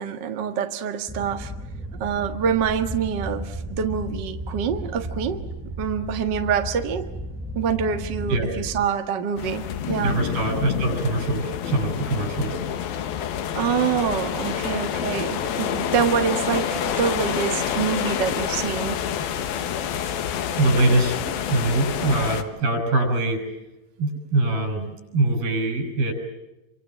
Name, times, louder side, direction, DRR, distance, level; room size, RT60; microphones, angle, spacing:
voice 1, 0.0-1.5 2.0-5.4 5.8-7.1 7.5-10.2 13.5-19.0, right 7 dB, 45° right, 6 dB, 1.6 m, -26 dB
sound 1, 1.1-8.9, right 1 dB, ahead, 3.3 m, -34 dB
sound 2, 9.4-22.4, left 9 dB, 85° left, 3.3 m, -28 dB
voice 2, 10.0-12.6 20.6-23.4 24.0-26.1, right 2 dB, 90° right, 6 dB, 8.2 m, -23 dB
27.5 x 25.5 x 7.5 m, 0.94 s
omnidirectional pair, 4.2 m